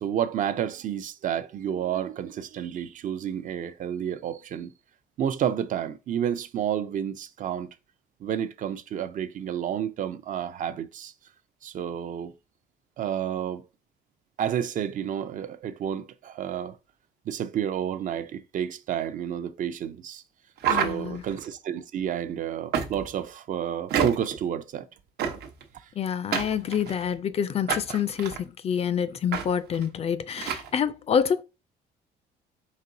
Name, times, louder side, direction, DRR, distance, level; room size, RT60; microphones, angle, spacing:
voice 1, 0.0-4.7 5.2-7.7 8.2-11.1 11.6-12.3 13.0-13.6 14.4-16.8 17.3-20.2 20.7-24.8, right 9 dB, 50° right, 0.5 m, -30 dB
sound 1, 20.6-21.5 22.7-23.2 23.9-24.4 25.2-25.6 26.3-27.1 27.7-28.4 29.3-29.5 29.7-29.9 30.4-30.7, right 7 dB, 70° right, 0.9 m, -28 dB
voice 2, 20.7-21.2 26.0-31.4, left 8 dB, 40° left, 0.4 m, -27 dB
4.1 x 3.7 x 2.6 m
cardioid pair, 110°, 17 cm